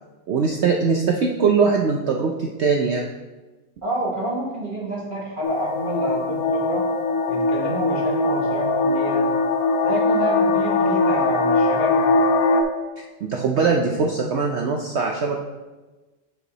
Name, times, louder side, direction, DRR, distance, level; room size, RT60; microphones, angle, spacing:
voice 1, 0.3-3.0 13.3-15.4, right 5 dB, 75° right, 1 dB, 0.6 m, -21 dB
voice 2, 3.8-6.9 7.3-9.3 9.8-12.2, right 1 dB, 35° right, -4 dB, 1.1 m, -28 dB
sound 1, 5.4-12.6, left 3 dB, 70° left, 0.9 m, -21 dB
8.0 x 4.6 x 4.1 m, 1.2 s
omnidirectional pair, 1.8 m